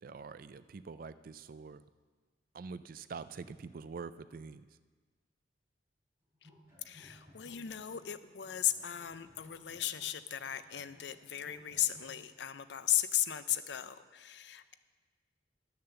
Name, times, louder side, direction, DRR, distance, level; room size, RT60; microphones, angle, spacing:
voice 1, 0.0-1.8 2.5-4.6, right 5 dB, 50° right, 14 dB, 0.4 m, -45 dB
sound 1, 6.3-8.1 8.4-12.2, left 1 dB, 15° right, 4.2 m, -60 dB
voice 2, 6.8-14.8, left 12 dB, 70° left, 13 dB, 0.5 m, -36 dB
11.0 x 6.6 x 6.9 m, 1.4 s
head